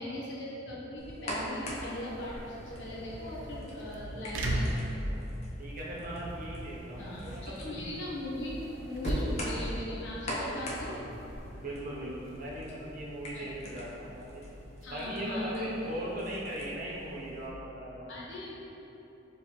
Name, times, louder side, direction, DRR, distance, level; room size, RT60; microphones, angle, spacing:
voice 1, 0.0-5.2 7.0-8.6 8.8-11.0 13.3-13.7 14.8-15.9 18.1-18.5, left 1 dB, 70° left, -5 dB, 0.8 m, -39 dB
sound 1, 1.0-17.5, left 1 dB, 35° left, 0.5 m, -43 dB
sound 2, 1.7-17.0, right 1 dB, 85° right, 0.4 m, -40 dB
voice 2, 5.6-7.8 10.7-11.0 11.6-14.4 14.9-18.1, right 1 dB, 45° right, -5 dB, 0.8 m, -39 dB
4.4 x 3.0 x 2.9 m, 3.0 s
head